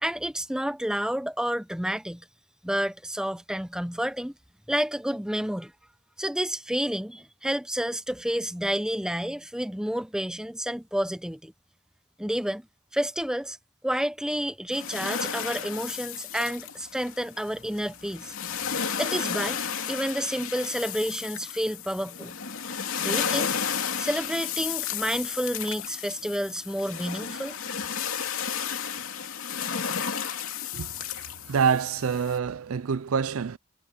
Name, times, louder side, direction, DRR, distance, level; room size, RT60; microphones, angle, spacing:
voice 1, 0.0-2.2 2.6-4.3 4.7-5.7 6.2-11.5 12.2-12.6 12.9-13.6 13.8-18.3 19.0-19.6 19.9-22.3 23.0-23.5 24.0-27.6, equal, 5° right, 0.8 m, -30 dB
sound 1, 14.7-32.4, left 7 dB, 70° left, 2.8 m, -33 dB
voice 2, 30.7-33.6, right 6 dB, 75° right, 0.5 m, -27 dB
head